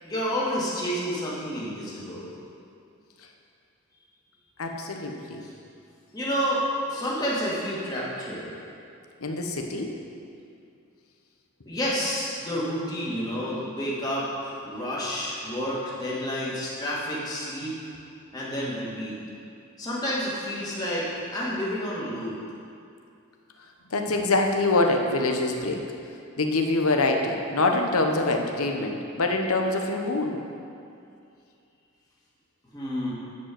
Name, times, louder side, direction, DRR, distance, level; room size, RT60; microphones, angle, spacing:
voice 1, 0.0-2.3 5.4-5.5 6.1-8.6 11.7-17.7 18.3-19.1 19.8-22.3 32.7-33.1, equal, 20° left, -7 dB, 2.1 m, -29 dB
voice 2, 4.6-5.4 9.2-9.9 19.3-19.4 23.9-25.8 26.4-30.4, left 2 dB, 90° left, 3 dB, 1.1 m, -25 dB
11.0 x 5.4 x 7.7 m, 2.5 s
head